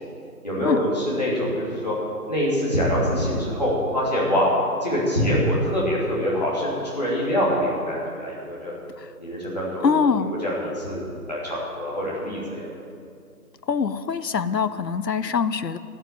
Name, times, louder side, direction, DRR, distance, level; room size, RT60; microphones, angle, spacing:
voice 1, 0.4-1.9 2.3-4.5 4.8-8.7 9.2-9.9 10.4-11.0 11.3-12.7, equal, 25° left, -7 dB, 2.9 m, -24 dB
voice 2, 9.8-10.3 13.7-15.8, left 6 dB, 85° left, 13 dB, 0.8 m, -23 dB
13.0 x 7.6 x 9.1 m, 2.3 s
figure-of-eight pair, 180°, 48 cm